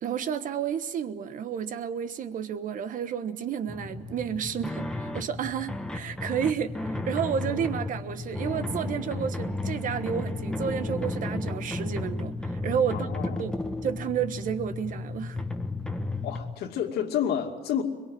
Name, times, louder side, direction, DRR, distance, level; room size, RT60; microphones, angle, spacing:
voice 1, 0.0-13.1 13.4-13.6 13.8-15.4, right 8 dB, 55° right, 11 dB, 1.3 m, -31 dB
sound 1, 3.7-16.5, left 2 dB, 5° left, 1.4 m, -33 dB
voice 2, 12.9-13.5 16.2-17.8, left 9 dB, 75° left, 4 dB, 2.5 m, -30 dB
23.0 x 22.5 x 7.8 m, 1.3 s
cardioid pair, 120°, 17 cm